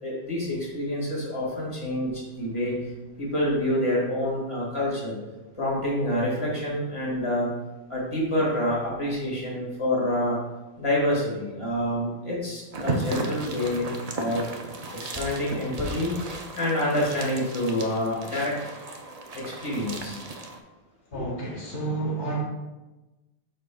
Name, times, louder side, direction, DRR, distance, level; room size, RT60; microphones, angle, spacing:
voice 1, 0.0-2.8 3.2-5.2 5.6-7.5 7.9-10.4 10.8-13.9 14.1-14.5 15.0-16.2 16.5-18.5 19.3-20.2 21.1-21.2, left 1 dB, 25° left, -5 dB, 2.0 m, -27 dB
sound 1, 12.7-20.6, right 2 dB, 40° right, 0.6 m, -35 dB
voice 2, 21.1-22.4, right 2 dB, 75° left, -2 dB, 1.4 m, -30 dB
11.5 x 4.4 x 2.3 m, 1.1 s
omnidirectional pair, 1.2 m